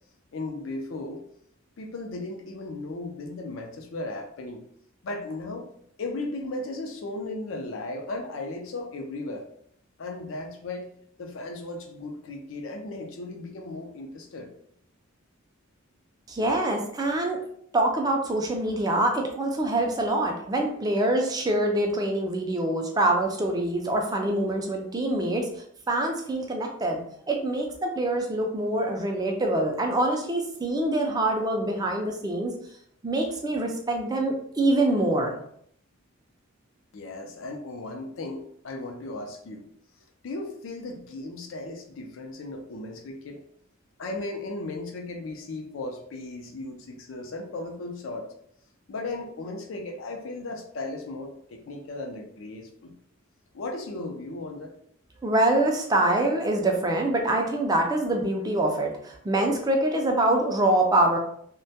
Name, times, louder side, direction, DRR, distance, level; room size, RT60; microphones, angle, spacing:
voice 1, 0.3-1.2 1.8-4.7 5.0-5.7 6.0-9.5 10.0-10.9 11.2-14.5 36.9-39.7 40.2-43.4 44.0-48.3 48.9-52.9 53.5-54.8, left 2 dB, 70° left, 3 dB, 0.4 m, -36 dB
voice 2, 16.3-17.4 17.7-25.5 25.9-32.5 33.0-35.3 55.2-61.2, right 1 dB, 20° right, 2 dB, 0.4 m, -25 dB
2.2 x 2.1 x 2.7 m, 0.66 s
head